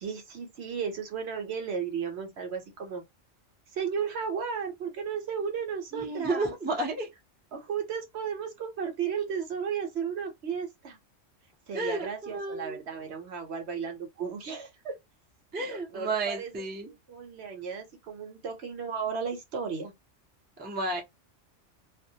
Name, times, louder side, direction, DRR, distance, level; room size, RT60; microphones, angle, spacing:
voice 1, 0.0-3.0 3.7-6.5 7.5-11.0 11.7-14.9 15.6-16.5 16.8-19.9, right 6 dB, 65° right, 0.9 m, -34 dB
voice 2, 5.9-7.1 11.7-12.8 15.5-16.9 20.6-21.0, right 2 dB, 15° right, 0.4 m, -32 dB
2.3 x 2.1 x 2.6 m
omnidirectional pair, 1.3 m